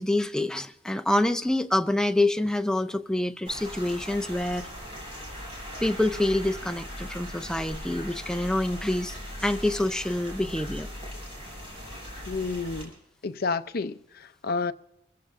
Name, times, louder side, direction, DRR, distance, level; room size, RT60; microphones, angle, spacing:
voice 1, 0.0-4.7 5.8-9.2 9.4-10.9, left 1 dB, 5° left, 0.5 m, -26 dB
sound 1, 3.5-12.8, equal, 30° right, 7.1 m, -39 dB
voice 2, 12.3-12.9 13.2-14.7, left 4 dB, 50° left, 0.5 m, -30 dB
28.5 x 15.0 x 2.5 m
head